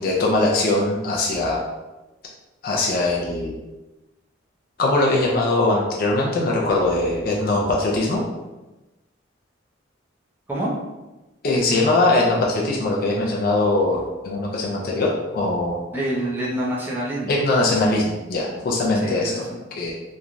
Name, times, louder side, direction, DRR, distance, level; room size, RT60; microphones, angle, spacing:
voice 1, 0.0-1.6 2.6-3.6 4.8-8.2 11.4-15.8 17.3-19.5 19.8-19.9, left 2 dB, 50° left, -2 dB, 0.4 m, -21 dB
voice 2, 15.9-17.3 19.0-19.6, right 1 dB, 10° right, -5 dB, 0.6 m, -26 dB
3.1 x 2.3 x 2.5 m, 1.1 s
head